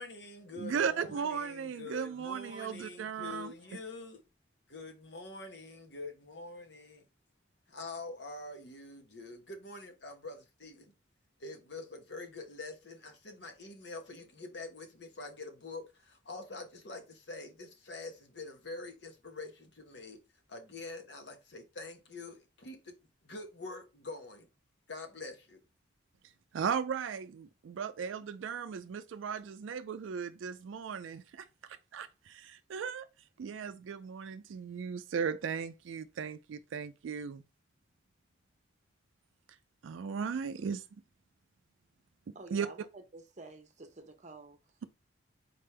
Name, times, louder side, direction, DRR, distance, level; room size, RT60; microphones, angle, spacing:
voice 1, 0.0-4.2 4.7-7.0 7.7-10.9 11.4-20.2 20.5-23.0 23.2-24.5 24.9-25.6, left 3 dB, 60° left, 1.0 m, -45 dB
voice 2, 0.6-3.5 26.5-31.4 31.9-33.1 33.4-37.4 39.8-40.8 42.3-42.7, right 6 dB, 80° right, 0.4 m, -36 dB
voice 3, 42.3-44.7, right 3 dB, 35° right, 0.8 m, -50 dB
4.3 x 3.4 x 3.2 m
head